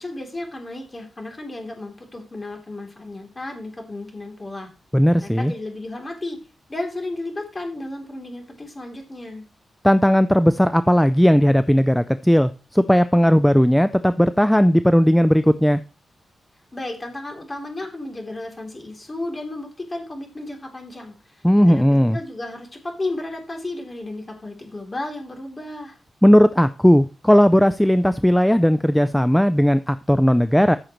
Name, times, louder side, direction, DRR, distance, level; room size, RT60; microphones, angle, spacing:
voice 1, 0.0-4.7 5.2-6.4 6.7-9.4 16.7-21.8 22.1-26.0, left 2 dB, 25° left, 2 dB, 2.9 m, -33 dB
voice 2, 4.9-5.5 9.8-15.8 21.4-22.2 26.2-30.8, equal, 5° left, 12 dB, 0.3 m, -16 dB
14.0 x 6.4 x 3.0 m, 0.33 s
wide cardioid pair, 115°, 0 cm